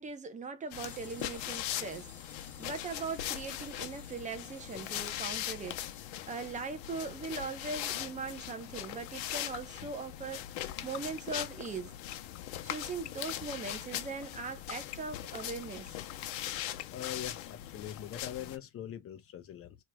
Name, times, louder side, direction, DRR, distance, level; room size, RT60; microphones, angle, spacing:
voice 1, 0.0-2.1 2.6-11.9 12.6-15.9, right 4 dB, 20° right, 0.8 m, -40 dB
sound 1, 0.6-6.8 7.1-7.2 7.4-7.5 7.9-8.0 8.3-8.4, left 2 dB, 5° left, 1.3 m, -57 dB
sound 2, 0.7-18.6, left 12 dB, 85° left, 0.8 m, -40 dB
sound 3, 8.4-18.0, left 18 dB, 55° left, 0.5 m, -43 dB
voice 2, 16.9-19.8, left 10 dB, 40° left, 0.8 m, -42 dB
4.6 x 3.1 x 2.2 m
cardioid pair, 155°, 35 cm